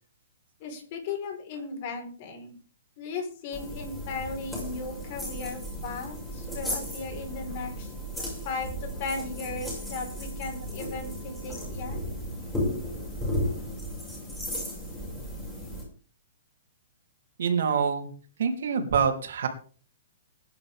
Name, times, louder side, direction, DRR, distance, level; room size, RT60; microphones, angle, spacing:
voice 1, 0.6-2.5 3.0-7.9 8.4-12.0, left 4 dB, 40° left, 3 dB, 4.8 m, -36 dB
sound 1, 3.5-15.8, equal, 5° left, 6.6 m, -35 dB
voice 2, 17.4-18.1 18.4-19.5, right 6 dB, 70° right, 4 dB, 3.5 m, -26 dB
20.0 x 10.5 x 3.7 m, 0.41 s
hypercardioid pair, 165°, 0 cm